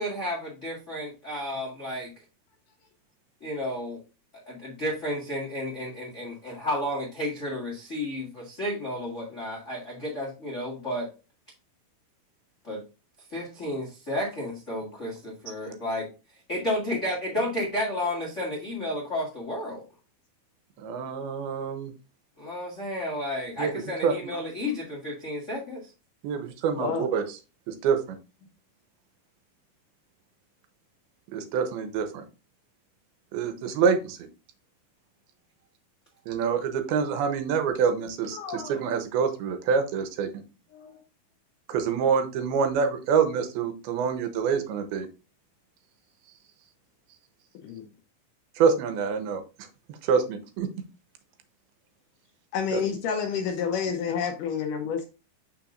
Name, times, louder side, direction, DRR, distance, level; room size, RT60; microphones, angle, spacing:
voice 1, 0.0-2.1 3.4-4.0 4.5-11.1 12.6-12.8 13.3-16.1 16.5-19.8 22.4-25.9, left 1 dB, 60° left, 0.7 m, -32 dB
voice 2, 20.8-21.9 23.6-23.7 24.0-24.2 26.2-27.2 27.7-28.2 31.3-32.2 33.3-34.3 36.3-40.3 41.7-45.1 48.6-49.4 50.0-50.7 52.7-52.8, right 6 dB, 85° right, 2.8 m, -26 dB
voice 3, 38.3-38.8 40.7-41.0 47.6-47.9 52.5-55.1, left 6 dB, 75° left, 2.0 m, -29 dB
7.1 x 5.8 x 2.5 m
omnidirectional pair, 4.3 m